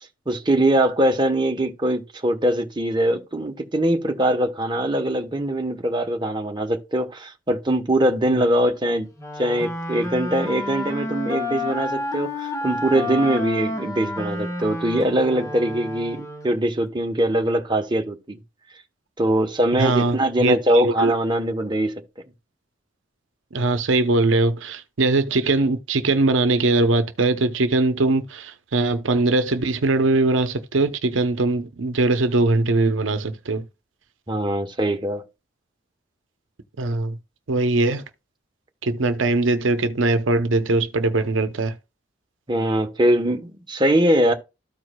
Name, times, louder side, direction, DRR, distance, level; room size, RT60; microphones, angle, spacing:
voice 1, 0.3-9.1 9.4-18.4 19.2-22.0 34.3-35.2 42.5-44.3, right 1 dB, 25° right, 1.0 m, -22 dB
Wind instrument woodwind instrument, 9.2-16.7, left 2 dB, 15° left, 1.1 m, -30 dB
voice 2, 19.8-21.2 23.5-33.6 36.8-37.2 37.5-38.0 38.8-41.7, right 2 dB, 85° right, 0.7 m, -21 dB
13.5 x 4.7 x 2.3 m
head